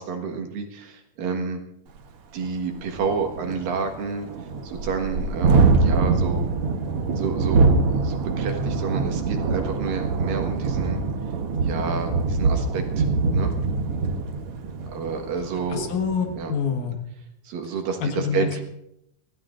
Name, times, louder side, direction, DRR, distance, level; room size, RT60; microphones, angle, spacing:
voice 1, 0.0-1.6 2.3-6.5 7.2-11.0 11.6-13.1 13.3-13.5 14.9-15.9 16.3-16.5 17.4-18.6, right 5 dB, 80° right, 4 dB, 3.3 m, -30 dB
Thunderstorm, 2.0-2.1 2.4-2.5 2.8-16.4, right 4 dB, 60° right, 1.5 m, -24 dB
voice 2, 15.7-16.9 18.0-18.5, left 6 dB, 70° left, 3 dB, 3.0 m, -26 dB
25.0 x 16.0 x 2.6 m, 0.78 s
omnidirectional pair, 3.9 m